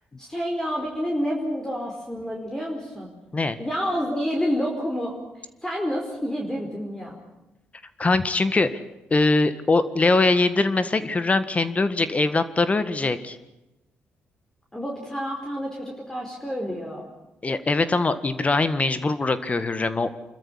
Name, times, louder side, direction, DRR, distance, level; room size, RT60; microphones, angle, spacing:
voice 1, 0.2-3.1 3.6-5.1 5.6-7.2 14.7-17.1, equal, 10° left, 0 dB, 4.7 m, -28 dB
voice 2, 8.0-8.8 9.1-13.4 17.4-20.3, left 3 dB, 30° left, 12 dB, 1.7 m, -22 dB
26.0 x 13.5 x 9.9 m, 0.98 s
supercardioid pair, 60°, 4 cm